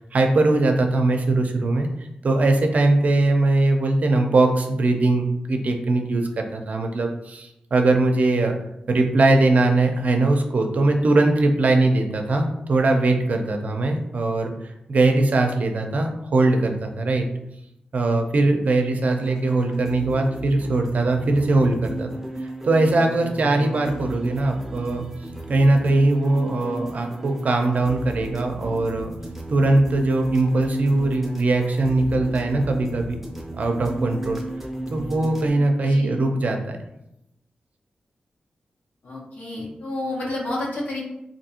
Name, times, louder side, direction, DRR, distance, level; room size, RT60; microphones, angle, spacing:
voice 1, 0.1-1.9 2.2-8.5 8.9-14.5 14.9-17.3 17.9-22.1 22.4-25.1 25.5-29.1 29.5-33.2 33.5-34.4 34.9-36.8, right 2 dB, 60° right, 4 dB, 0.5 m, -21 dB
sound 1, 19.0-35.5, right 1 dB, 5° right, 0.6 m, -34 dB
voice 2, 35.8-36.1 39.0-41.1, left 2 dB, 80° left, -4 dB, 0.9 m, -30 dB
3.5 x 2.7 x 2.8 m, 0.84 s
wide cardioid pair, 100°, 3 cm